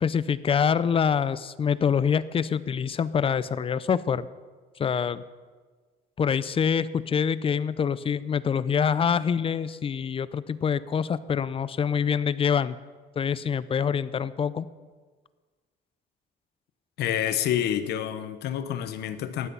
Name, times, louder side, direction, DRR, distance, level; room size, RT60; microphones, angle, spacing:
voice 1, 0.0-4.3 4.8-5.2 6.2-12.8 13.2-14.7, left 7 dB, 35° left, 16 dB, 0.5 m, -25 dB
voice 2, 17.0-19.5, left 10 dB, 75° left, 11 dB, 1.1 m, -28 dB
15.0 x 11.0 x 5.6 m, 1.4 s
cardioid pair, 110°, 17 cm